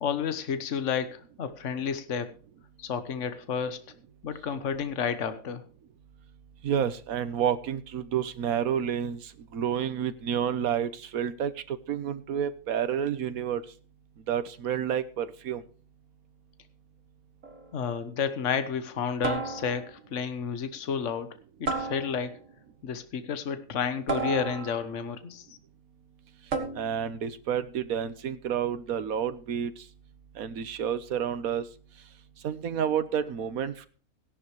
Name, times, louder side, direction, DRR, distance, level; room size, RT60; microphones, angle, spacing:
voice 1, 0.0-2.3 2.8-3.8 4.2-5.6 17.7-22.4 22.8-25.5, left 7 dB, 60° left, 10 dB, 1.4 m, -31 dB
voice 2, 6.6-13.6 14.3-15.6 26.8-29.7 30.4-31.7 32.4-33.9, right 8 dB, 85° right, 12 dB, 1.4 m, -30 dB
sound 1, 17.4-17.8 19.2-20.0 21.7-22.5 24.1-25.0 26.5-27.1, right 4 dB, 55° right, 1.9 m, -33 dB
16.5 x 11.5 x 3.2 m, 0.39 s
omnidirectional pair, 1.5 m